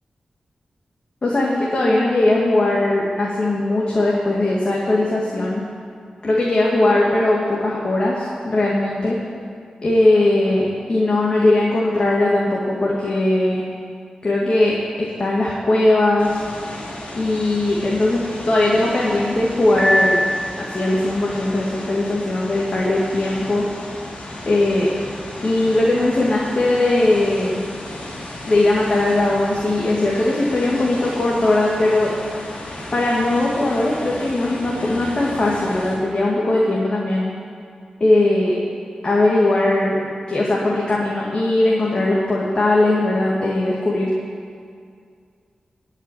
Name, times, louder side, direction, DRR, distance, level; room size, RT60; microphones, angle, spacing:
voice 1, 1.2-5.6 6.2-9.2 9.8-13.6 14.2-16.4 17.1-20.2 20.6-23.7 24.5-24.9 25.4-27.6 28.5-32.1 32.9-37.3 38.0-38.6 39.0-40.0 40.3-44.1, left 2 dB, 45° left, -4 dB, 1.9 m, -19 dB
sound 1, 16.2-36.0, left 1 dB, 70° left, 3.1 m, -34 dB
Piano, 19.8-21.1, equal, 40° right, 1.7 m, -21 dB
17.5 x 5.9 x 9.3 m, 2.3 s
wide cardioid pair, 105°, 2 cm